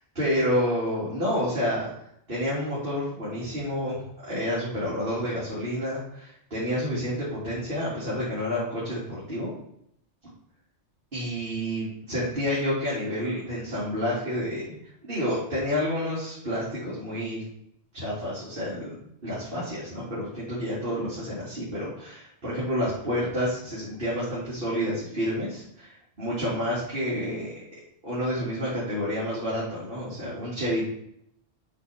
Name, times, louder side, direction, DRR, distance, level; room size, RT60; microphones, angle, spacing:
voice 1, 0.1-2.0 2.3-9.5 10.2-10.3 11.1-17.4 17.9-27.6 28.0-30.8, equal, 55° right, -9 dB, 2.7 m, -29 dB
10.5 x 6.3 x 3.5 m, 0.73 s
omnidirectional pair, 1.1 m